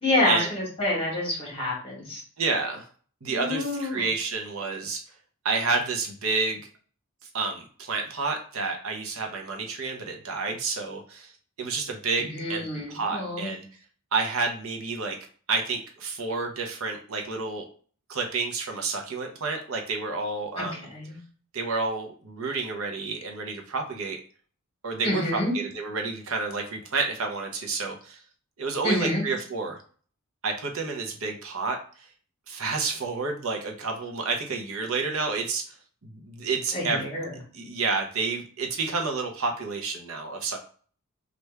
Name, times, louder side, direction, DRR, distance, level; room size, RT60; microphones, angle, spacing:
voice 1, 0.0-2.2 3.2-4.0 12.2-13.5 20.6-21.2 25.0-25.5 28.8-29.2 36.7-37.3, left 1 dB, 25° left, -3 dB, 1.7 m, -28 dB
voice 2, 2.4-2.9 3.2-5.0 5.4-6.6 7.3-11.3 11.6-13.6 14.1-15.2 15.5-17.6 18.1-20.9 21.5-24.2 24.8-28.2 28.6-29.8 30.4-31.8 32.5-35.6 36.0-37.0 37.5-40.6, right 4 dB, 65° right, 3 dB, 0.7 m, -29 dB
3.3 x 2.5 x 4.4 m, 0.43 s
head